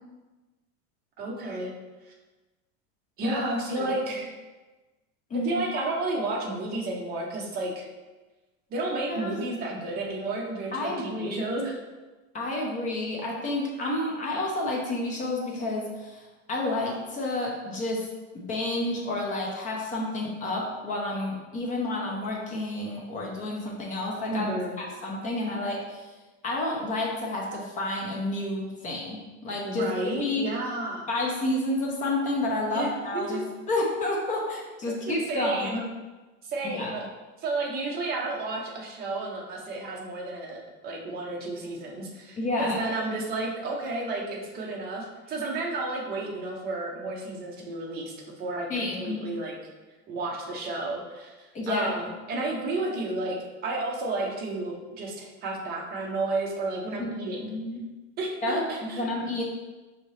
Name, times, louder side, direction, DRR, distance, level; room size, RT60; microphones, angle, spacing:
voice 1, 1.2-1.7 3.2-4.4 5.3-7.9 8.7-11.8 24.3-24.8 29.6-31.1 32.7-33.4 35.1-35.8 36.4-37.1 37.4-49.6 50.1-57.5 58.2-59.1, right 2 dB, 25° right, -1 dB, 0.7 m, -32 dB
voice 2, 9.1-9.4 10.7-11.5 12.3-16.2 16.5-18.1 18.3-26.1 26.4-29.9 30.2-30.5 31.1-33.4 33.7-35.8 36.7-37.0 42.4-42.8 48.7-49.2 51.5-51.9 57.0-57.1 57.4-57.8 58.4-59.4, left 2 dB, 20° left, -2 dB, 0.6 m, -30 dB
5.1 x 2.8 x 3.1 m, 1.2 s
supercardioid pair, 155°, 37 cm